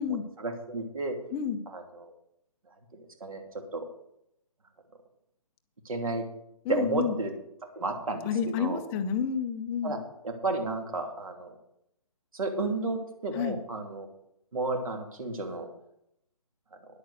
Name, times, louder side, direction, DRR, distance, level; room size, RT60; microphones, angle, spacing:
voice 1, 0.1-1.2 1.7-2.1 2.9-3.4 3.7-3.9 5.8-6.2 6.7-7.3 7.8-8.8 9.8-11.5 12.3-14.1 14.5-15.7, right 2 dB, 70° right, 4 dB, 2.8 m, -32 dB
voice 2, 6.6-7.2 8.2-10.0 13.3-13.6, left 7 dB, 10° left, 7 dB, 0.5 m, -30 dB
10.5 x 8.4 x 6.5 m, 0.79 s
hypercardioid pair, 155°, 19 cm